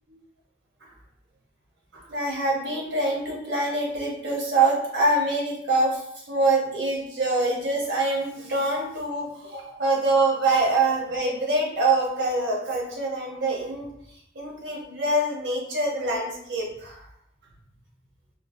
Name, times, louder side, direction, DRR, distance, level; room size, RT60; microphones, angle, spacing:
voice 1, 1.9-13.9 14.3-17.0, right 2 dB, 85° right, -2 dB, 0.9 m, -25 dB
3.8 x 2.0 x 2.6 m, 0.72 s
head